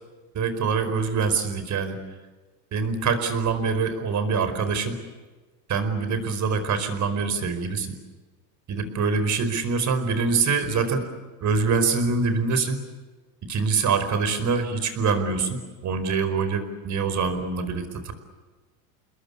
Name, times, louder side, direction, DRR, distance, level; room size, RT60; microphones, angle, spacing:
voice 1, 0.3-2.0 2.7-5.0 5.7-7.9 8.7-11.1 11.4-12.8 13.4-18.1, right 5 dB, 35° right, 10 dB, 4.9 m, -24 dB
29.0 x 21.5 x 8.5 m, 1.3 s
supercardioid pair, 115°, 48 cm